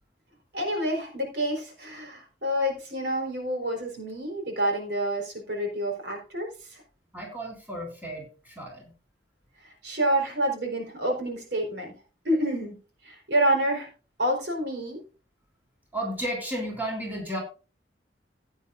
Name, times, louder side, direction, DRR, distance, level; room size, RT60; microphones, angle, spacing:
voice 1, 0.5-6.8 9.6-11.9 12.2-12.8 13.0-13.9 14.2-15.0, right 1 dB, 70° right, 1 dB, 4.3 m, -28 dB
voice 2, 7.1-8.9 15.9-17.4, right 1 dB, 10° right, -1 dB, 3.4 m, -33 dB
15.5 x 9.3 x 2.6 m, 0.35 s
head